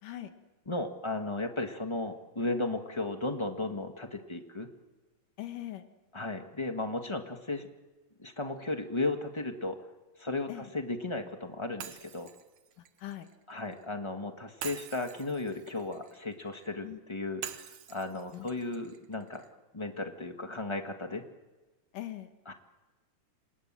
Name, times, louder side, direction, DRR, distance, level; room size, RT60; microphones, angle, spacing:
voice 1, 0.7-4.7 6.1-7.7 8.2-9.9 10.2-10.5 10.7-12.3 13.5-19.5 19.7-21.2 22.5-22.6, left 2 dB, 50° left, 5 dB, 0.3 m, -35 dB
voice 2, 5.4-5.9 10.5-10.7 12.8-13.3 16.8-17.0 18.3-18.5 21.9-22.3, left 13 dB, 70° left, 8 dB, 3.1 m, -41 dB
Shatter, 11.8-13.9 14.6-16.7 17.4-19.5, right 10 dB, 65° right, 2.4 m, -46 dB
28.5 x 27.5 x 7.6 m, 1.2 s
omnidirectional pair, 3.9 m